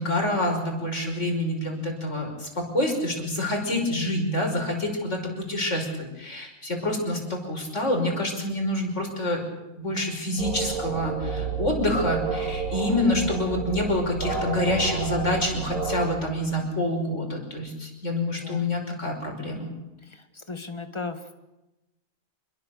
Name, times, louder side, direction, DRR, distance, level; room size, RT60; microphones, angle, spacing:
voice 1, 0.0-9.4 9.8-19.7, left 1 dB, 55° left, 2 dB, 5.8 m, -27 dB
sound 1, 10.4-16.1, right 5 dB, 85° right, 7.6 m, -30 dB
voice 2, 20.0-21.3, left 3 dB, 20° left, 7 dB, 1.9 m, -36 dB
27.0 x 22.0 x 6.8 m, 0.98 s
omnidirectional pair, 1.4 m